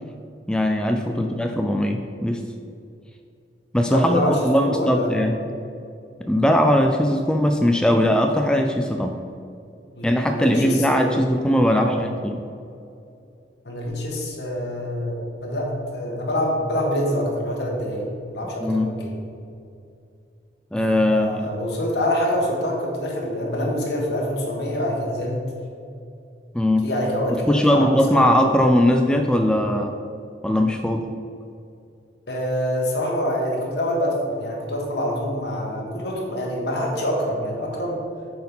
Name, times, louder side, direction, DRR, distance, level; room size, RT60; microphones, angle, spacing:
voice 1, 0.5-2.4 3.7-5.4 6.2-9.2 10.0-12.4 18.6-18.9 20.7-21.3 26.5-26.9 27.3-29.9 30.4-31.1, left 1 dB, 5° left, 4 dB, 0.3 m, -20 dB
voice 2, 3.9-5.2 9.9-11.1 11.7-12.0 13.6-19.1 21.1-25.4 26.8-28.4 32.3-38.0, equal, 75° left, -2 dB, 1.4 m, -26 dB
7.9 x 4.3 x 5.5 m, 2.5 s
head